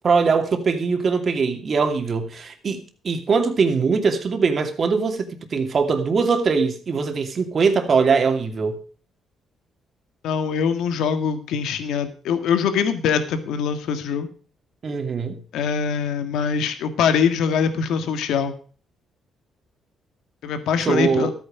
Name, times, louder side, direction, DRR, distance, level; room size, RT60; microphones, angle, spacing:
voice 1, 0.0-8.8 14.8-15.4 20.8-21.3, right 5 dB, 45° right, 2.5 m, -21 dB
voice 2, 10.2-14.3 15.5-18.5 20.4-21.3, left 7 dB, 85° left, 1.7 m, -23 dB
13.0 x 9.2 x 5.0 m
cardioid pair, 90°, 0 cm